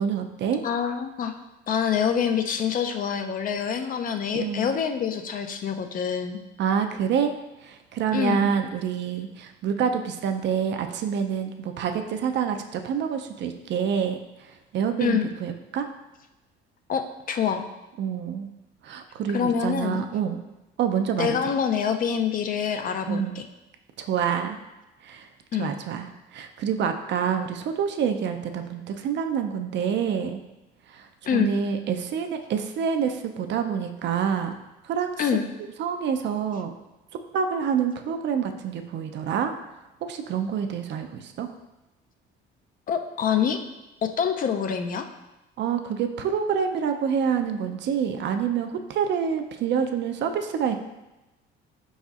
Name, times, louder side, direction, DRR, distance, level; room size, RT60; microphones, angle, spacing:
voice 1, 0.0-0.6 4.4-4.7 6.6-7.3 7.6-14.5 14.7-15.9 18.0-18.5 18.8-20.4 20.8-21.4 23.1-23.4 24.0-24.6 25.0-25.3 25.6-30.4 30.9-34.6 34.8-35.2 35.8-36.8 37.3-39.5 40.0-41.5 45.6-50.8, right 7 dB, 60° right, 6 dB, 0.4 m, -27 dB
voice 2, 0.6-1.3 1.7-6.4 8.1-8.5 15.0-15.3 16.9-17.7 19.3-20.1 21.2-23.5 25.5-25.7 31.3-31.5 35.2-35.4 42.9-43.6 44.0-45.1, left 7 dB, 40° left, 6 dB, 0.4 m, -26 dB
4.8 x 4.1 x 2.4 m, 1.0 s
cardioid pair, 115°, 21 cm